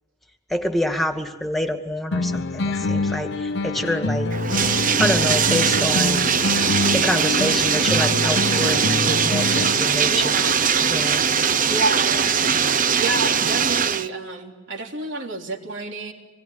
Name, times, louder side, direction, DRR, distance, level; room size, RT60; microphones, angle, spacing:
voice 1, 0.5-4.3 5.0-6.3 6.9-10.3 10.9-11.2, left 1 dB, ahead, 5 dB, 2.2 m, -26 dB
sound 1, 2.1-10.1, left 3 dB, 65° left, 0.9 m, -26 dB
Bathtub (filling or washing), 4.3-14.1, right 7 dB, 40° right, 0.8 m, -21 dB
voice 2, 10.0-10.6 11.7-12.7 13.0-16.1, right 3 dB, 65° right, 2 dB, 3.6 m, -29 dB
26.5 x 21.5 x 9.6 m, 1.2 s
head